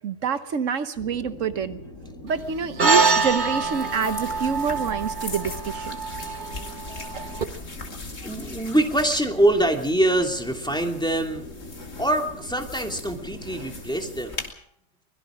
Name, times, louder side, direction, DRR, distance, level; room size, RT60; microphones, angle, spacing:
voice 1, 0.0-1.8 2.2-6.0 7.1-7.3, right 6 dB, 80° right, 11 dB, 1.4 m, -27 dB
sound 1, 0.9-14.3, left 2 dB, 80° left, 3.1 m, -42 dB
sound 2, 2.8-7.5, right 4 dB, 40° right, 1.3 m, -25 dB
sound 3, 3.0-14.5, left 3 dB, 60° left, 2.6 m, -40 dB
voice 2, 6.2-7.7 8.2-11.4 12.0-14.5, right 1 dB, 5° left, 2 dB, 2.7 m, -25 dB
24.0 x 21.5 x 5.1 m, 0.62 s
omnidirectional pair, 1.3 m